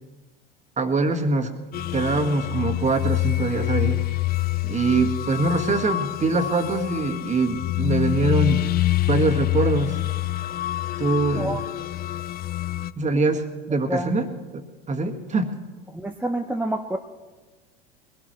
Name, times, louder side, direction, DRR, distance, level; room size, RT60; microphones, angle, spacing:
voice 1, 0.8-1.5 1.9-4.0 4.6-8.6 9.1-10.0 11.0-11.6 13.0-14.3 14.5-15.5, right 3 dB, 25° right, 5 dB, 1.8 m, -23 dB
sound 1, 1.7-12.9, left 15 dB, 30° left, 0.4 m, -26 dB
voice 2, 11.3-11.6 13.9-14.1 15.9-17.0, right 1 dB, 5° right, 2 dB, 0.8 m, -27 dB
21.5 x 17.5 x 3.2 m, 1.3 s
hypercardioid pair, 85°, 30 cm